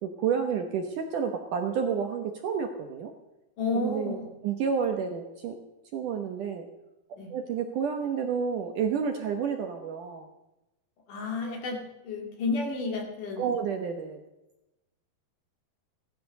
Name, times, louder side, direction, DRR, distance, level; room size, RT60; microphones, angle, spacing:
voice 1, 0.0-3.1 3.8-4.2 4.4-5.6 5.9-6.7 7.3-10.3 13.4-14.2, right 6 dB, 65° right, 4 dB, 2.2 m, -30 dB
voice 2, 3.6-4.3 7.2-7.3 11.1-13.6, left 3 dB, 55° left, 2 dB, 3.8 m, -31 dB
17.0 x 12.5 x 6.6 m, 0.95 s
omnidirectional pair, 4.7 m